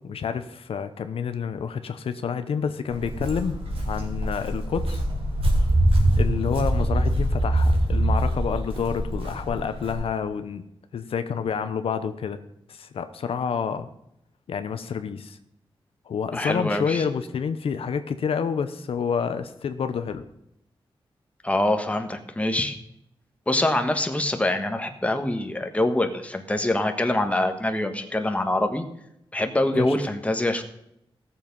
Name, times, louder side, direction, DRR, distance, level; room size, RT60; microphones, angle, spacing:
voice 1, 0.0-3.6 3.8-5.0 6.2-10.6 10.9-12.4 12.7-13.9 14.5-15.4 16.1-20.2 29.7-29.9, left 6 dB, 85° left, 10 dB, 0.8 m, -28 dB
Walk footsteps, 2.9-9.9, right 1 dB, 80° right, 3.3 m, -24 dB
voice 2, 16.3-17.0 21.4-22.8 23.5-28.8 29.3-30.6, left 1 dB, 15° left, 6 dB, 1.4 m, -24 dB
16.0 x 7.1 x 5.4 m, 0.78 s
wide cardioid pair, 90°, 10 cm